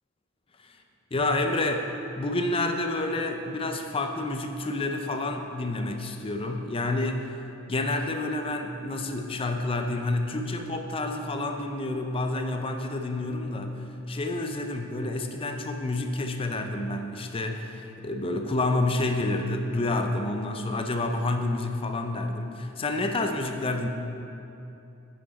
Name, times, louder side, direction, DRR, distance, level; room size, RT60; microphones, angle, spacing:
voice 1, 1.1-1.9 2.2-7.4 7.7-23.9, left 2 dB, 25° left, 5 dB, 0.5 m, -29 dB
9.9 x 5.8 x 4.2 m, 2.8 s
head